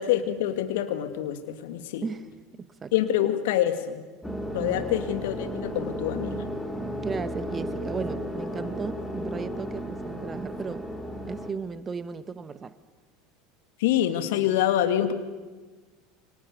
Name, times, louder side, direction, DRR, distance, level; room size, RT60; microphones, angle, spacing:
voice 1, 0.0-2.0 2.9-4.0 4.5-6.4 13.8-15.1, left 11 dB, 65° left, 8 dB, 2.4 m, -26 dB
voice 2, 2.5-2.9 4.6-4.9 7.0-10.9 11.3-12.7, right 5 dB, 25° right, 13 dB, 1.3 m, -35 dB
sound 1, 4.2-11.5, equal, ahead, 2.9 m, -34 dB
28.5 x 25.5 x 6.9 m, 1.3 s
hypercardioid pair, 75°, 0 cm